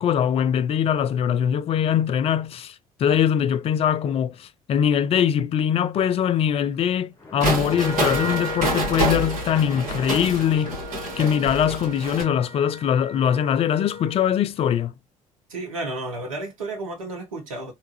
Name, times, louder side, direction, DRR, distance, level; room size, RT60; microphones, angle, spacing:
voice 1, 0.0-10.8 11.2-14.9, left 9 dB, 35° left, 0.4 m, -22 dB
Splash splatter, 7.2-11.2, left 2 dB, 15° left, 1.2 m, -41 dB
sound 1, 7.4-12.2, right 1 dB, 50° right, 2.1 m, -27 dB
Wind instrument woodwind instrument, 7.6-14.3, left 1 dB, 10° right, 0.9 m, -37 dB
voice 2, 15.5-17.7, right 2 dB, 80° right, 0.8 m, -32 dB
3.4 x 2.9 x 3.0 m
figure-of-eight pair, 55°, 17 cm